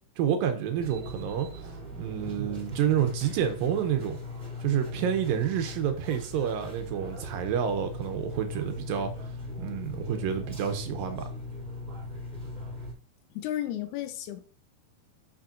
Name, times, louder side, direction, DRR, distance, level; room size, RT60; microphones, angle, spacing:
voice 1, 0.2-4.2 4.6-11.3, right 9 dB, 75° right, 2.3 m, -29 dB
sound 1, 0.8-12.9, left 2 dB, 15° right, 2.6 m, -39 dB
voice 2, 13.3-14.4, left 12 dB, 85° left, 2.9 m, -33 dB
8.7 x 6.6 x 2.6 m
omnidirectional pair, 4.4 m